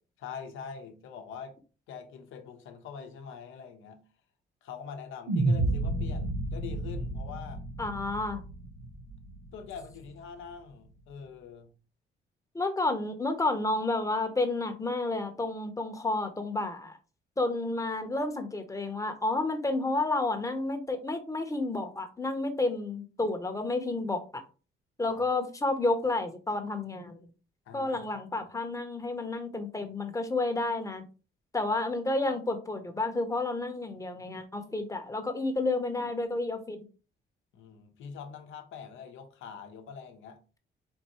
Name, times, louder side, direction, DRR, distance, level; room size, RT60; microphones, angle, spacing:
voice 1, 0.2-1.6 1.9-4.0 4.6-7.6 9.5-11.7 25.1-25.2 27.7-28.2 37.5-40.4, left 6 dB, 80° left, 0.8 m, -44 dB
sound 1, 5.3-9.6, right 2 dB, 45° right, 0.9 m, -31 dB
voice 2, 7.8-8.4 12.5-17.0 17.4-24.4 25.0-27.3 27.7-31.1 31.5-36.8, left 2 dB, 15° left, 0.8 m, -30 dB
4.4 x 2.6 x 2.9 m
cardioid pair, 90°, 20 cm